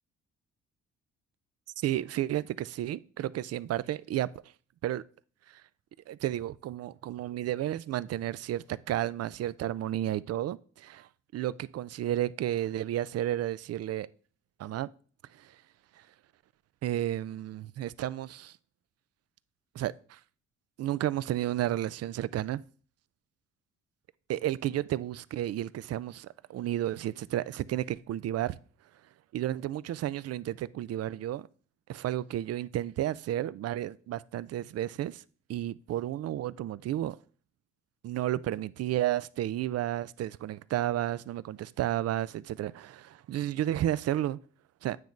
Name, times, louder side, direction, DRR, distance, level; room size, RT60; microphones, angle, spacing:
voice 1, 1.8-4.3 4.8-5.0 5.5-5.6 6.1-14.1 14.6-14.9 15.3-15.6 16.8-18.6 19.7-20.2 20.8-22.6 24.3-28.6 29.3-31.5 31.9-35.2 35.5-37.2 38.0-44.4 44.8-45.0, right 13 dB, 55° right, 0.4 m, -32 dB
9.3 x 3.1 x 5.2 m
cardioid pair, 75°, 30 cm